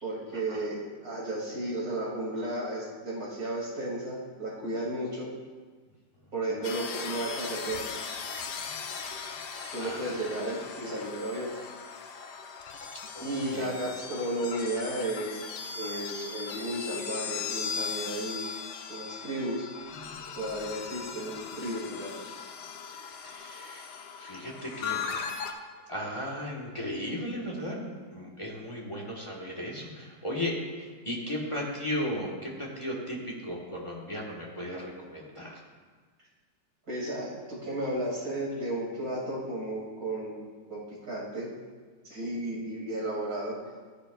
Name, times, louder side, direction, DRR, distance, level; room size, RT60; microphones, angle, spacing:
voice 1, 0.0-5.3 6.3-8.0 9.7-11.5 13.2-15.4 15.7-18.5 18.9-19.7 20.3-22.1 36.9-41.5 42.0-43.6, right 1 dB, 50° right, -5 dB, 3.1 m, -33 dB
sound 1, 6.6-25.5, left 6 dB, 70° left, 1.3 m, -38 dB
voice 2, 9.8-10.1 13.1-13.7 23.2-25.0 25.5-25.6 25.9-35.6, left 1 dB, 20° left, -3 dB, 1.3 m, -36 dB
13.5 x 10.0 x 2.4 m, 1.5 s
omnidirectional pair, 2.0 m